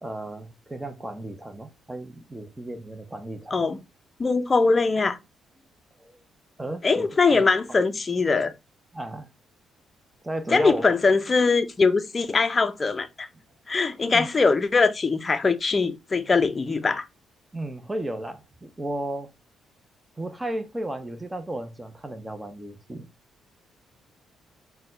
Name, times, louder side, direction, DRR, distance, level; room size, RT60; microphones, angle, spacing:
voice 1, 0.0-3.7 6.0-6.2 6.6-7.5 8.9-9.3 10.2-10.9 14.1-14.3 17.5-19.3 20.2-23.1, right 1 dB, 15° right, 0.7 m, -34 dB
voice 2, 4.2-5.2 6.8-8.5 10.5-13.3 13.7-17.0, left 4 dB, 30° left, 0.5 m, -22 dB
4.1 x 2.2 x 4.1 m
cardioid pair, 90°, 0 cm